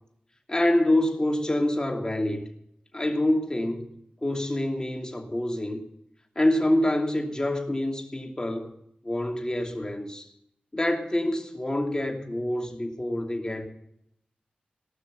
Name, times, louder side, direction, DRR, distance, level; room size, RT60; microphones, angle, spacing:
voice 1, 0.5-2.4 2.9-3.9 4.2-5.8 6.3-8.7 9.0-10.3 10.7-13.7, left 1 dB, 25° left, 1 dB, 2.8 m, -26 dB
18.0 x 6.1 x 7.9 m, 0.74 s
cardioid pair, 50°, 3 cm